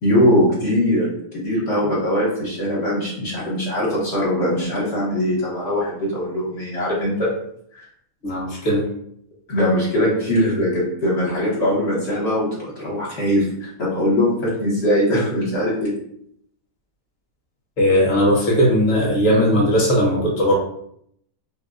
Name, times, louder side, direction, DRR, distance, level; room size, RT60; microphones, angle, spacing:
voice 1, 0.0-7.3 7.7-7.9 9.5-15.9, left 1 dB, 55° left, -6 dB, 1.1 m, -21 dB
voice 2, 8.2-8.9 17.8-20.5, equal, 35° left, -5 dB, 0.9 m, -18 dB
3.4 x 2.1 x 2.5 m, 0.70 s
omnidirectional pair, 1.5 m